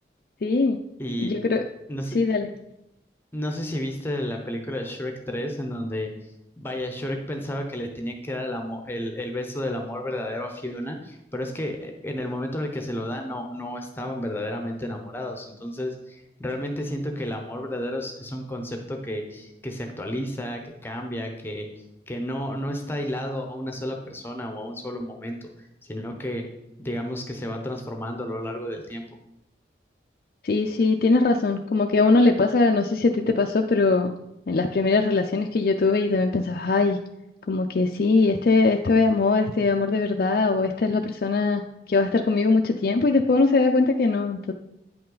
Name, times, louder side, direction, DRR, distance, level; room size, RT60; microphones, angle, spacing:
voice 1, 0.4-0.8 1.2-1.6 2.1-2.5 30.4-34.1 34.5-37.0 37.5-41.6 41.9-44.5, left 3 dB, 55° left, 2 dB, 0.4 m, -21 dB
voice 2, 1.0-1.3 1.9-2.2 3.3-6.1 6.6-21.7 22.1-26.4 26.8-29.0, left 1 dB, 10° left, 3 dB, 0.7 m, -31 dB
9.3 x 5.5 x 3.9 m, 0.87 s
head